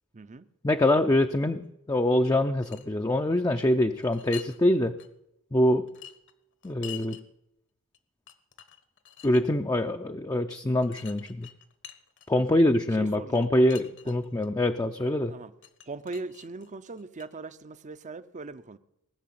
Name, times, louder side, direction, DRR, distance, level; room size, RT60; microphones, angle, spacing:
voice 1, 0.1-0.5 12.3-12.6 12.9-13.5 15.3-15.5 15.9-18.8, right 3 dB, 35° right, 0.6 m, -40 dB
voice 2, 0.6-4.9 5.5-5.8 6.6-7.2 9.2-11.5 12.3-15.3, left 1 dB, 15° left, 0.5 m, -24 dB
sound 1, 2.4-2.9 4.0-4.6 5.0-5.1 5.9-7.2 7.9-8.0 8.3-9.4 10.8-12.5 13.3-14.5 15.6-17.3, left 11 dB, 60° left, 1.3 m, -46 dB
19.5 x 6.7 x 9.3 m
head